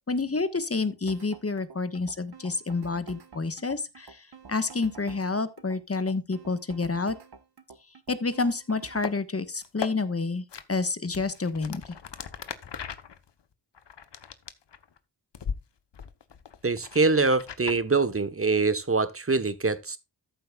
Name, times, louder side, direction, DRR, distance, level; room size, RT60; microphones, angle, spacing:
voice 1, 0.1-7.2 8.1-11.9, left 3 dB, 35° left, 1.3 m, -29 dB
sound 1, 1.1-9.1, right 5 dB, 60° right, 1.4 m, -48 dB
sound 2, 8.9-9.1 9.6-9.9 10.5-10.6 11.1-15.0 15.3-15.6 15.9-17.8, left 7 dB, 70° left, 1.1 m, -38 dB
voice 2, 16.6-20.0, right 3 dB, 30° right, 1.2 m, -24 dB
14.0 x 7.7 x 2.4 m
cardioid pair, 55°, 43 cm